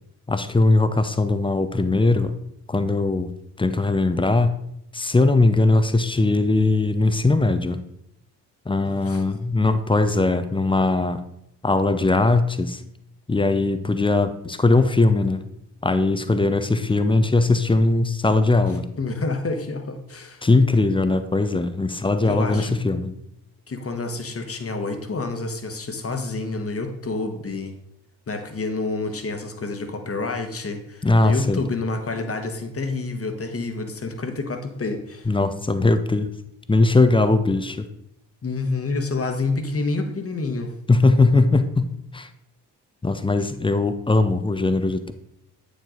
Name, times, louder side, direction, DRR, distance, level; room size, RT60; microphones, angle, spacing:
voice 1, 0.3-2.3 2.7-3.3 3.6-4.5 4.9-7.8 8.7-11.2 11.6-12.8 13.3-15.4 15.8-18.9 20.4-23.1 31.0-31.7 35.3-36.3 36.7-37.9 40.9-42.3 43.0-45.1, left 2 dB, 10° left, 10 dB, 0.6 m, -20 dB
voice 2, 8.8-9.2 19.0-20.5 22.2-22.7 23.7-27.7 28.3-35.3 38.4-40.7, left 3 dB, 25° left, 6 dB, 1.2 m, -28 dB
8.8 x 5.1 x 3.8 m, 0.76 s
figure-of-eight pair, 40°, 50 cm